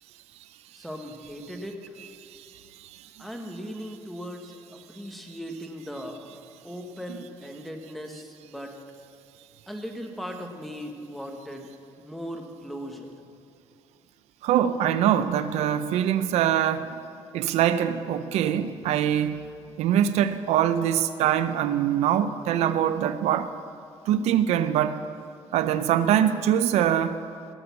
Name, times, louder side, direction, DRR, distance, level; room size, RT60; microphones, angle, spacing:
voice 1, 0.7-1.8 3.2-6.3 6.6-8.7 9.7-11.7 12.0-13.1, equal, ahead, 3 dB, 1.3 m, -38 dB
voice 2, 14.4-16.9 17.3-19.4 19.8-23.5 24.1-25.0 25.5-27.2, right 10 dB, 85° right, 12 dB, 0.5 m, -23 dB
17.0 x 6.9 x 7.0 m, 2.4 s
cardioid pair, 135°, 11 cm